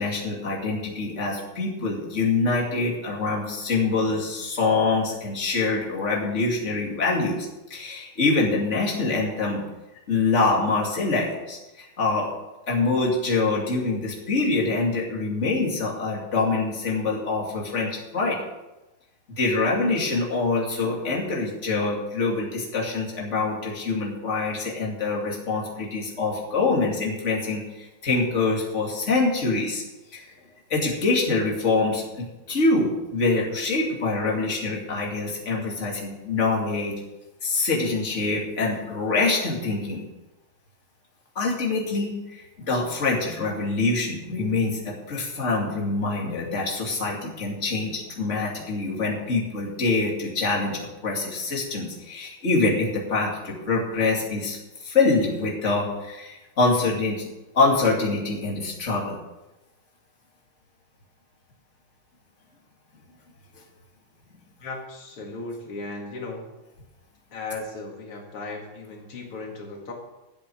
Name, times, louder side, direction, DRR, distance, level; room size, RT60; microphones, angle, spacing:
voice 1, 0.0-9.6 10.1-12.3 12.7-18.4 19.4-29.8 30.1-30.3 30.7-36.9 37.4-40.0 41.3-54.6 54.8-59.2, left 3 dB, 35° left, -3 dB, 2.8 m, -25 dB
voice 2, 64.6-66.5 67.3-69.9, left 3 dB, 85° left, 0 dB, 3.1 m, -36 dB
12.5 x 8.1 x 6.3 m, 1.0 s
omnidirectional pair, 2.4 m